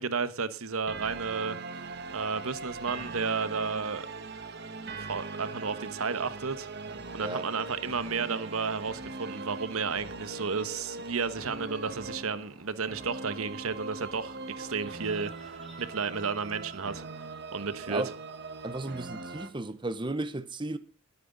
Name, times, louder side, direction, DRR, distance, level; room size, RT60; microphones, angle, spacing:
voice 1, 0.0-4.1 5.0-6.7 7.1-17.0 17.5-18.0, right 5 dB, 80° right, 1.1 m, -33 dB
sound 1, 0.9-19.5, right 3 dB, 50° right, 1.5 m, -41 dB
voice 2, 7.2-7.5 17.9-18.1 18.6-20.8, right 2 dB, 20° right, 0.7 m, -34 dB
sound 2, 10.5-16.3, equal, ahead, 4.1 m, -58 dB
20.5 x 9.5 x 3.9 m
head